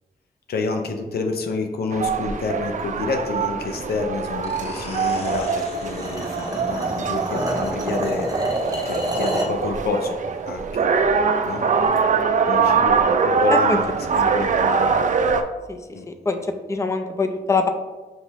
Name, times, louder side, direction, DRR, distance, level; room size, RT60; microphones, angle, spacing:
voice 1, 0.5-8.3 8.8-10.9 11.4-11.7 12.5-15.0 15.9-16.1, left 3 dB, 80° left, 4 dB, 0.5 m, -28 dB
sound 1, 1.9-15.4, right 5 dB, 55° right, 0.4 m, -23 dB
sound 2, 4.4-9.8, left 2 dB, 40° left, 0.9 m, -42 dB
sound 3, 5.2-9.6, right 1 dB, 25° right, 0.9 m, -27 dB
voice 2, 16.7-17.7, left 4 dB, 20° left, 6 dB, 0.5 m, -23 dB
5.9 x 2.7 x 3.0 m, 1.2 s
cardioid pair, 55°, 16 cm